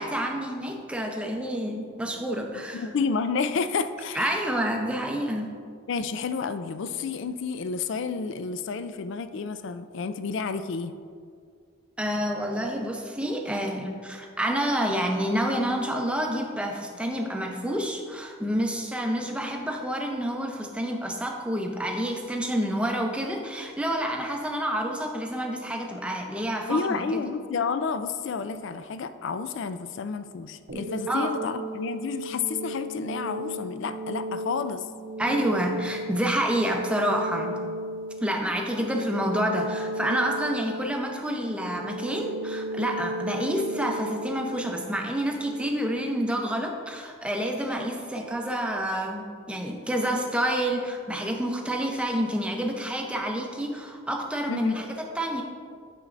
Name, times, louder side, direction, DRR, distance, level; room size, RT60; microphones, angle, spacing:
voice 1, 0.0-2.9 4.1-5.5 12.0-27.2 31.1-31.3 35.2-37.6 38.2-55.4, equal, 5° right, 2 dB, 0.6 m, -28 dB
voice 2, 2.7-4.4 5.9-10.9 26.7-34.8 54.5-54.8, left 5 dB, 60° left, 11 dB, 0.3 m, -30 dB
sound 1, 30.7-45.7, right 1 dB, 55° right, 0.7 m, -35 dB
9.0 x 6.7 x 2.5 m, 2.1 s
head